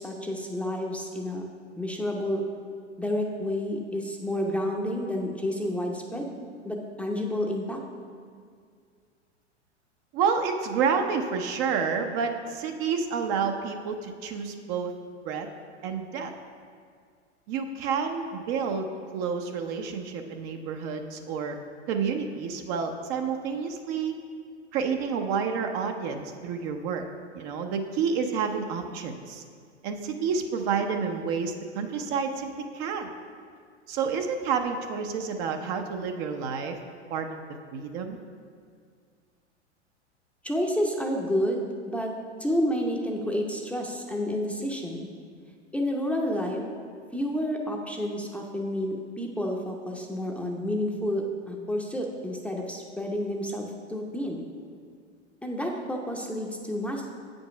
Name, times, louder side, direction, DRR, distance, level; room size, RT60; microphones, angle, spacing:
voice 1, 0.0-1.4 1.8-2.4 3.0-6.3 6.6-7.8 40.4-42.1 42.4-45.1 45.7-46.6 47.1-54.4 55.4-57.1, equal, 5° left, 0 dB, 0.7 m, -30 dB
voice 2, 10.1-14.9 15.2-15.5 15.8-16.3 17.5-18.9 19.1-21.6 21.9-24.1 24.7-27.0 27.3-29.4 29.8-33.1 33.9-36.8 37.1-37.4 37.7-38.2, right 6 dB, 40° right, 5 dB, 0.7 m, -29 dB
8.0 x 5.3 x 5.8 m, 2.1 s
figure-of-eight pair, 95°, 36 cm